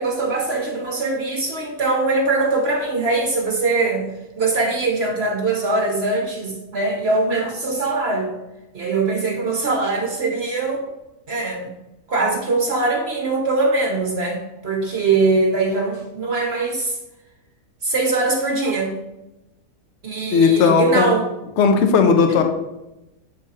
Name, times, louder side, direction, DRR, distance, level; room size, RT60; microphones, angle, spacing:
voice 1, 0.0-8.4 8.7-10.8 11.3-11.7 12.1-17.0 17.8-18.9 20.0-21.2 22.3-22.4, right 3 dB, 50° right, 1 dB, 0.9 m, -22 dB
voice 2, 20.3-21.1 21.6-22.4, left 5 dB, 60° left, 6 dB, 0.8 m, -15 dB
7.7 x 3.7 x 4.1 m, 0.95 s
omnidirectional pair, 1.7 m